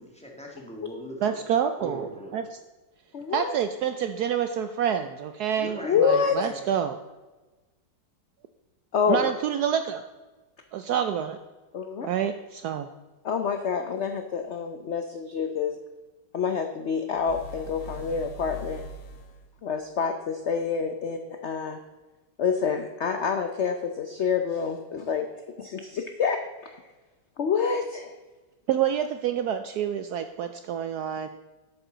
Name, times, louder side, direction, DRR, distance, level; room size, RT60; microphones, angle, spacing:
voice 1, 0.0-1.4 1.8-2.4 5.6-6.0 6.4-6.6, equal, 5° left, -1 dB, 1.8 m, -40 dB
voice 2, 1.2-2.6 3.3-7.0 9.1-10.0 10.7-11.4 12.0-12.9 28.7-31.3, right 9 dB, 70° right, 9 dB, 1.0 m, -27 dB
voice 3, 3.1-3.5 5.8-6.4 8.9-9.3 11.7-12.1 13.2-15.8 16.3-18.8 19.6-21.8 22.4-25.2 25.6-26.7 27.4-28.1, left 6 dB, 65° left, 6 dB, 0.7 m, -27 dB
sound 1, 17.1-19.5, left 2 dB, 90° left, 1.8 m, -41 dB
11.0 x 8.4 x 3.9 m, 1.2 s
omnidirectional pair, 2.0 m